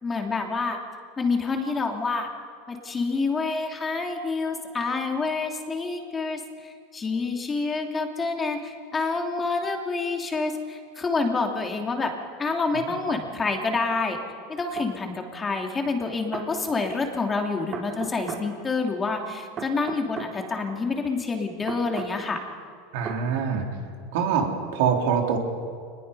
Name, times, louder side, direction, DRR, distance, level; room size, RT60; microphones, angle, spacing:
voice 1, 0.0-0.8 1.2-2.3 2.7-12.1 12.4-14.2 14.5-22.4, left 3 dB, 20° left, 2 dB, 2.9 m, -28 dB
sound 1, 14.8-14.9 16.0-16.5 17.7-18.5 19.6-20.3 21.7-22.1 23.0-23.2, right 6 dB, 40° right, 4.5 m, -35 dB
voice 2, 22.9-23.6 24.1-25.4, right 7 dB, 75° right, 1 dB, 3.9 m, -24 dB
24.0 x 20.5 x 5.6 m, 2.3 s
supercardioid pair, 120°, 0 cm